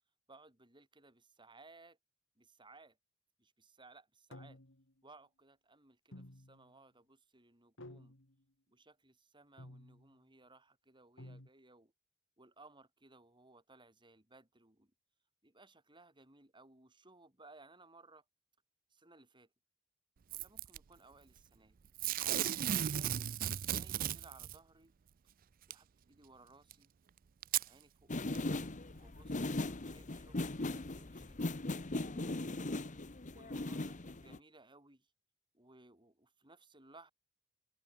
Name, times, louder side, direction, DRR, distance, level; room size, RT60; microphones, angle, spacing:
voice 1, 0.3-2.0 2.4-3.0 3.4-4.6 5.0-8.2 8.7-11.9 12.4-14.9 15.4-18.2 18.9-19.5 20.3-21.8 22.5-23.4 23.7-24.9 25.7-26.9 27.6-31.4 32.0-32.8 33.3-35.1 35.5-37.1, right 2 dB, 20° right, 5.4 m, -62 dB
sound 1, 4.3-4.9 6.1-6.7 7.8-8.4 9.6-10.1 11.2-11.5, left 1 dB, 60° left, 3.3 m, -53 dB
Packing tape duct tape / Tearing, 20.3-20.8 22.0-24.6 25.7-25.8 26.7-26.8 27.4-27.7 28.3-28.4, right 11 dB, 45° right, 0.4 m, -35 dB
sound 2, 28.1-34.4, left 2 dB, 35° left, 1.1 m, -39 dB
head